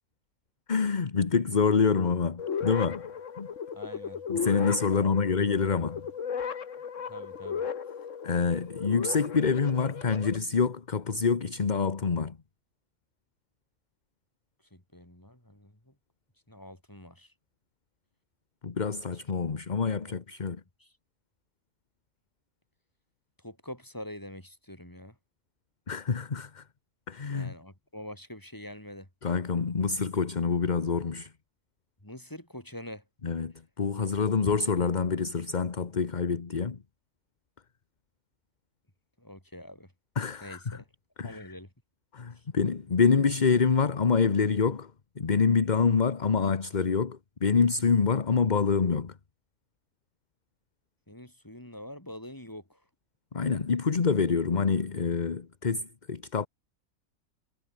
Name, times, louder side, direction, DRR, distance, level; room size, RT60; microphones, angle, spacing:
voice 1, 0.7-3.1 3.4-3.5 4.3-6.1 8.2-12.4 18.6-20.6 25.9-26.6 27.1-27.5 29.2-31.3 33.2-36.8 40.2-40.8 41.2-41.5 42.1-44.9 45.2-49.2 53.3-56.5, left 5 dB, 35° left, 1.2 m, -26 dB
sound 1, 2.4-10.4, left 7 dB, 60° left, 1.6 m, -36 dB
voice 2, 3.7-4.2 4.9-5.1 7.1-7.6 14.7-15.9 16.5-17.3 20.0-20.2 20.8-20.9 23.4-25.1 27.3-29.1 32.0-33.0 39.2-39.9 40.4-40.9 41.2-41.7 42.3-42.4 51.1-52.8, left 1 dB, 15° left, 4.5 m, -45 dB
omnidirectional pair, 1.5 m